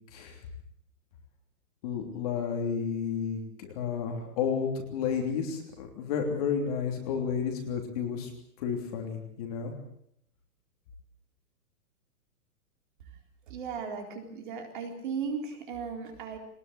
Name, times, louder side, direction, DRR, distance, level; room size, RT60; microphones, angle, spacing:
voice 1, 1.8-8.3 8.6-9.7, left 6 dB, 25° left, 3 dB, 3.2 m, -31 dB
voice 2, 13.5-16.4, right 6 dB, 30° right, 4 dB, 3.9 m, -36 dB
22.0 x 20.5 x 8.3 m, 0.70 s
hypercardioid pair, 180°, 46 cm